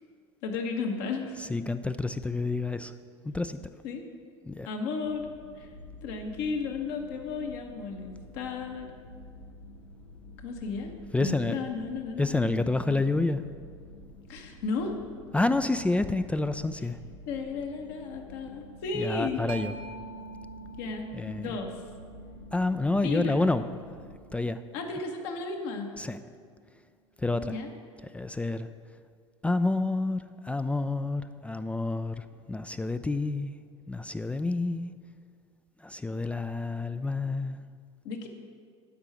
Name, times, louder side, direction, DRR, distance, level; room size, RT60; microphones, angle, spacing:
voice 1, 0.4-1.4 3.8-4.0 4.7-5.3 5.6-5.7 6.0-8.9 10.4-10.9 11.2-13.0 14.3-15.0 17.3-19.4 20.8-21.7 22.9-23.3 24.7-25.9 27.4-27.7 38.0-38.3, left 4 dB, 60° left, 3 dB, 1.3 m, -34 dB
voice 2, 1.4-2.9 3.2-3.6 4.5-4.7 11.1-11.6 12.2-13.4 15.3-17.0 18.9-19.7 21.1-21.6 22.5-23.6 24.3-24.6 26.0-26.2 27.2-27.6 28.1-28.7 29.4-33.6 33.9-34.9 35.8-37.6, left 2 dB, 10° left, 10 dB, 0.3 m, -29 dB
sound 1, 5.0-24.2, left 1 dB, 85° left, 0.9 m, -49 dB
Mallet percussion, 19.5-26.8, right 4 dB, 45° right, 1.0 m, -47 dB
12.0 x 5.6 x 6.1 m, 2.1 s
figure-of-eight pair, 70°, 15 cm